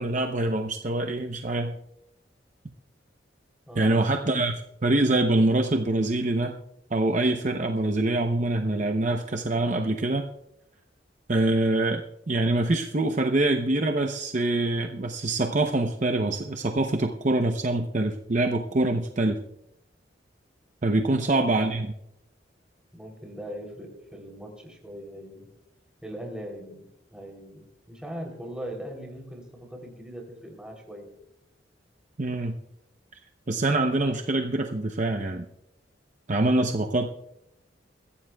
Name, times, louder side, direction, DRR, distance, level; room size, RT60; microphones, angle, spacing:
voice 1, 0.0-1.8 3.8-4.5 4.8-6.5 6.9-10.3 11.3-19.4 20.8-21.9 32.2-32.6 33.5-35.5 36.3-37.1, right 2 dB, 40° right, 4 dB, 0.7 m, -25 dB
voice 2, 3.7-4.2 21.2-21.4 22.9-25.5 26.0-31.1, equal, 5° right, 1 dB, 3.2 m, -40 dB
22.5 x 14.5 x 2.3 m, 0.82 s
head